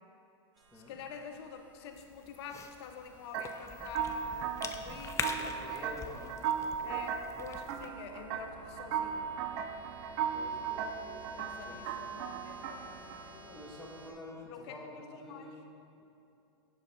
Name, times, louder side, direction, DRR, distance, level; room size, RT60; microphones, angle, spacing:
sound 1, 0.5-14.1, right 2 dB, 70° right, 1.3 m, -55 dB
voice 1, 0.7-6.0 6.8-9.3 11.4-13.6 14.1-15.5, left 6 dB, 60° left, 5 dB, 0.8 m, -48 dB
Cough / Chewing mastication, 1.9-7.9, left 6 dB, 20° left, 0.4 m, -43 dB
sound 2, 3.3-13.2, right 8 dB, 50° right, 0.5 m, -37 dB
voice 2, 5.2-6.4 6.8-7.1 10.3-11.9 13.5-15.7 16.0-16.1, left 1 dB, ahead, -5 dB, 1.5 m, -49 dB
7.2 x 6.3 x 4.2 m, 2.6 s
hypercardioid pair, 105°, 15 cm